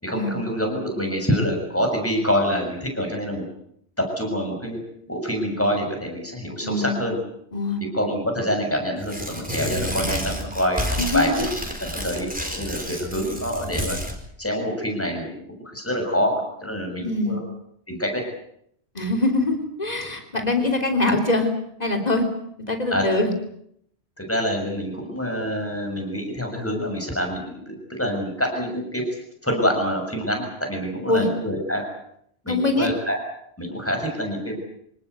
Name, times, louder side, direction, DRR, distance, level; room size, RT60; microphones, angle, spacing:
voice 1, 0.0-3.4 4.0-4.8 5.1-7.2 7.8-11.5 11.8-12.3 12.5-14.0 14.4-15.4 15.7-17.4 17.9-18.2 22.9-23.1 24.2-29.0 29.4-31.8 32.4-33.2 33.6-34.6, equal, 10° left, 2 dB, 6.8 m, -26 dB
voice 2, 6.6-7.0 7.5-7.8 11.0-11.5 17.0-17.4 18.9-21.5 21.8-22.3 22.7-23.3 31.1-31.3 32.5-32.9, left 2 dB, 40° left, 4 dB, 3.7 m, -23 dB
Tearing, 9.0-14.2, equal, 10° right, 4.5 m, -30 dB
26.0 x 19.0 x 8.1 m, 0.70 s
omnidirectional pair, 1.1 m